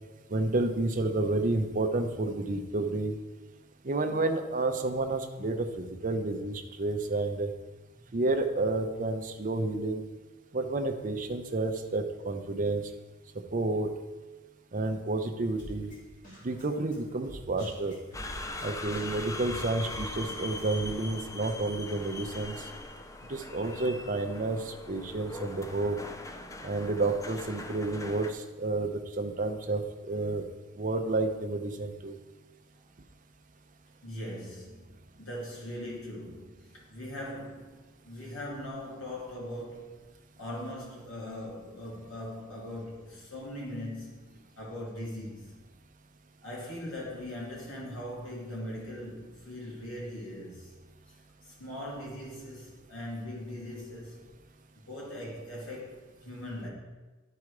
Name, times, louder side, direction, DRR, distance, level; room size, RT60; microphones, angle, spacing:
voice 1, 0.3-3.1 3.8-7.5 8.1-10.1 10.5-12.8 13.5-13.9 14.7-15.9 16.4-17.9 18.6-22.7 23.3-26.0 26.6-30.4 30.8-32.2, right 2 dB, 40° right, 5 dB, 0.7 m, -30 dB
voice 2, 7.9-8.6 8.9-9.0 34.0-39.9 40.4-45.6 46.4-50.7 51.4-54.3 54.9-56.7, left 1 dB, 70° left, -4 dB, 2.7 m, -40 dB
Drum kit, 15.6-20.9, right 1 dB, 40° left, 3.1 m, -47 dB
sound 1, 18.1-28.3, left 2 dB, 15° left, 0.4 m, -41 dB
11.0 x 4.8 x 4.8 m, 1.2 s
head